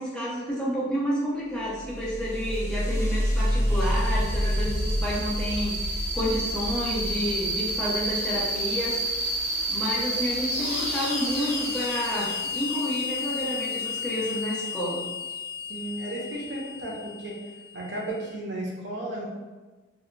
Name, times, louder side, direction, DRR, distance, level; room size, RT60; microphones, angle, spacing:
voice 1, 0.0-9.0 9.7-15.0, equal, 5° left, -9 dB, 0.7 m, -30 dB
sound 1, 1.7-18.1, equal, 45° left, 1.0 m, -29 dB
voice 2, 15.7-17.4 17.7-19.3, right 1 dB, 65° right, -2 dB, 0.6 m, -34 dB
2.7 x 2.0 x 2.5 m, 1.2 s
head